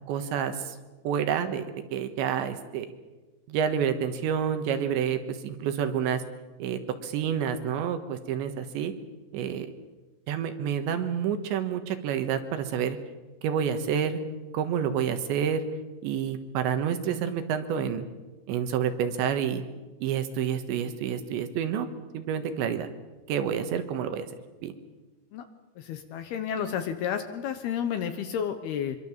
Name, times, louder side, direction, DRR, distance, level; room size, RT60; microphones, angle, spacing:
voice 1, 0.1-0.7 1.0-1.6 1.9-2.9 3.5-6.2 6.6-8.9 9.3-9.7 10.3-13.0 13.4-14.2 14.5-15.6 16.0-18.0 18.5-19.6 20.0-21.9 22.1-22.9 23.3-24.3 24.6-24.7, right 8 dB, 75° right, 8 dB, 3.5 m, -28 dB
voice 2, 25.8-29.0, left 8 dB, 70° left, 8 dB, 2.6 m, -31 dB
24.5 x 23.5 x 7.3 m, 1.2 s
omnidirectional pair, 5.5 m